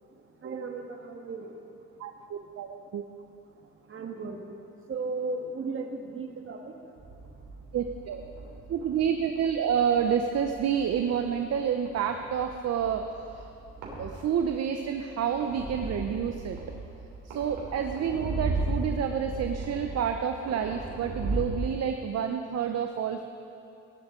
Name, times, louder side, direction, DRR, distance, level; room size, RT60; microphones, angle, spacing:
voice 1, 0.4-1.5 3.9-4.4 4.9-6.7, right 3 dB, 45° right, 3 dB, 1.6 m, -35 dB
voice 2, 2.0-3.0 7.7-8.2 8.7-13.0 14.0-16.6 17.3-23.2, right 8 dB, 60° right, 5 dB, 0.7 m, -29 dB
sound 1, 7.0-21.6, right 2 dB, 90° right, 3.4 m, -37 dB
18.0 x 11.0 x 3.8 m, 2.6 s
cardioid pair, 90°, 30 cm